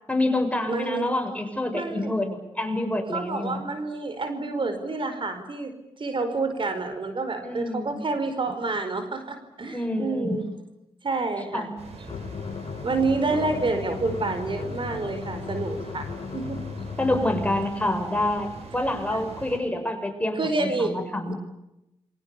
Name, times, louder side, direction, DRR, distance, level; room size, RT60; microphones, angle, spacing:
voice 1, 0.1-3.7 7.4-8.0 9.7-10.4 11.5-11.7 17.0-21.3, left 1 dB, 15° left, 5 dB, 6.9 m, -27 dB
voice 2, 0.7-1.1 1.7-2.2 3.1-10.4 11.0-11.7 12.8-16.6 19.1-19.2 20.4-21.3, right 3 dB, 55° right, 8 dB, 4.9 m, -28 dB
sound 1, 11.8-19.6, right 3 dB, 85° right, 6.9 m, -43 dB
sound 2, 12.1-17.7, left 6 dB, 70° left, 1.5 m, -36 dB
28.0 x 23.5 x 7.0 m, 0.91 s
cardioid pair, 55°, 11 cm